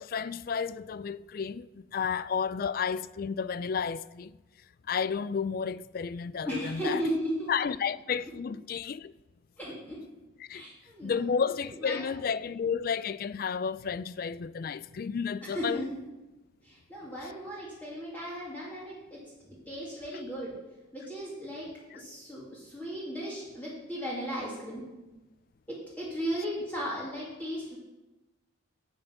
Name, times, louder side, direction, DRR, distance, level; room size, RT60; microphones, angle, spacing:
voice 1, 0.0-4.3 4.9-7.0 7.5-9.1 10.5-10.6 11.0-15.9 21.9-22.0, left 6 dB, 45° left, 0.3 m, -32 dB
voice 2, 6.4-7.5 9.6-10.0 10.5-11.3 11.8-12.1 15.4-15.8 16.6-19.2 19.4-20.5 20.9-21.7 21.9-24.9 25.7-27.8, equal, 10° left, 2.3 m, -36 dB
12.5 x 8.0 x 5.7 m
head